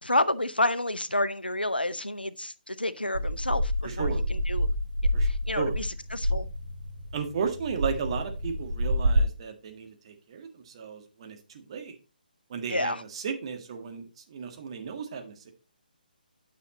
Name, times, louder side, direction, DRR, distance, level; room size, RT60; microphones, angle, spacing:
voice 1, 0.0-4.7 5.2-6.5 12.7-13.0, left 1 dB, 85° left, 0.8 m, -29 dB
sound 1, 3.1-9.2, equal, 70° right, 1.8 m, -28 dB
voice 2, 3.8-4.2 5.1-5.3 5.6-5.7 7.1-12.0 12.5-15.5, right 6 dB, 35° right, 1.7 m, -34 dB
9.6 x 6.2 x 4.1 m
figure-of-eight pair, 140°, 5 cm